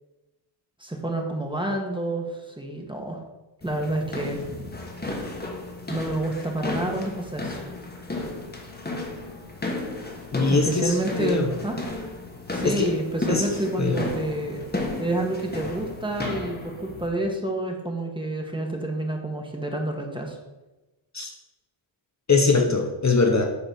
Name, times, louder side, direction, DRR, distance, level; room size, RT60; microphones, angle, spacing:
voice 1, 0.8-3.2 3.6-4.4 5.9-7.6 10.5-11.8 12.5-14.6 15.0-20.4, right 1 dB, 10° right, 1 dB, 1.3 m, -29 dB
sound 1, 3.6-17.1, left 2 dB, 20° left, 1.4 m, -34 dB
voice 2, 10.3-11.6 12.6-12.9 13.3-13.5 13.8-14.0 21.1-21.3 22.3-23.4, left 4 dB, 35° left, 3 dB, 1.0 m, -22 dB
9.5 x 3.9 x 6.9 m, 1.1 s
wide cardioid pair, 150°, 48 cm